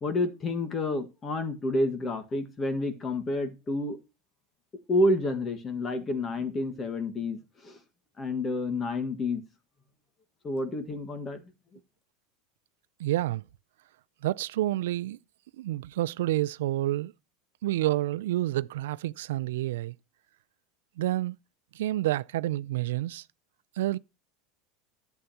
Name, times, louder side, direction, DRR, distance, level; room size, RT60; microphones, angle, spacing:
voice 1, 0.0-4.0 4.9-7.8 8.2-9.4 10.4-11.4, left 2 dB, 20° left, 1.6 m, -29 dB
voice 2, 13.0-13.4 14.2-15.2 15.6-17.1 17.6-19.9 21.0-21.4 21.7-23.2 23.8-24.0, right 15 dB, 90° right, 0.4 m, -29 dB
11.0 x 8.3 x 2.8 m
supercardioid pair, 150°, 0 cm